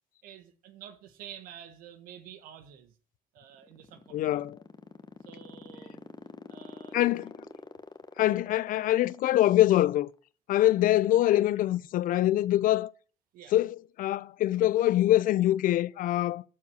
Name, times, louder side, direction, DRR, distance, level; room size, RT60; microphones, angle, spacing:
voice 1, 0.2-2.9 3.3-4.4 5.2-6.0 6.5-7.2 13.3-13.5, right 9 dB, 85° right, 1.5 m, -49 dB
sound 1, 3.5-10.1, left 4 dB, 30° left, 1.3 m, -45 dB
voice 2, 4.1-4.6 6.9-7.3 8.2-10.1 10.5-12.9 13.5-16.4, left 14 dB, 75° left, 0.5 m, -24 dB
12.0 x 4.7 x 8.3 m
supercardioid pair, 60°, 14 cm